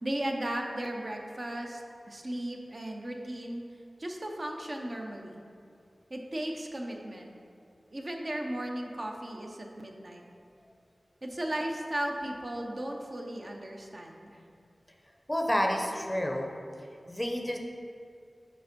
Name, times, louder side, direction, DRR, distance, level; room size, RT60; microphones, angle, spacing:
voice 1, 0.0-1.8 2.1-3.6 4.0-5.4 6.1-7.3 7.9-10.2 11.2-14.4, right 1 dB, 45° right, 1 dB, 0.6 m, -36 dB
voice 2, 15.3-16.5 17.1-17.6, equal, 10° left, 1 dB, 0.6 m, -29 dB
5.4 x 4.3 x 5.1 m, 2.5 s
wide cardioid pair, 70°, 0 cm